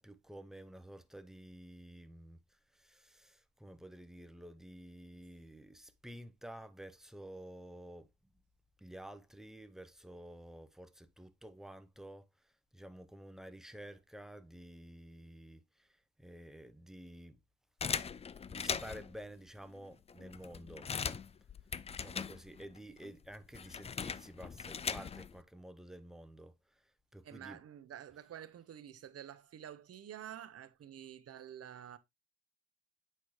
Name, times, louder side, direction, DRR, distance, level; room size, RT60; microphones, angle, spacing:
voice 1, 0.0-8.1 8.8-17.4 18.5-20.9 21.9-27.6, right 1 dB, ahead, 0.8 m, -51 dB
sound 1, 17.8-19.2 19.8-19.9 20.1-22.8 23.0-25.4, left 6 dB, 20° left, 0.3 m, -40 dB
voice 2, 27.2-32.0, right 10 dB, 55° right, 0.9 m, -49 dB
8.3 x 4.4 x 3.1 m
cardioid pair, 90°, 30 cm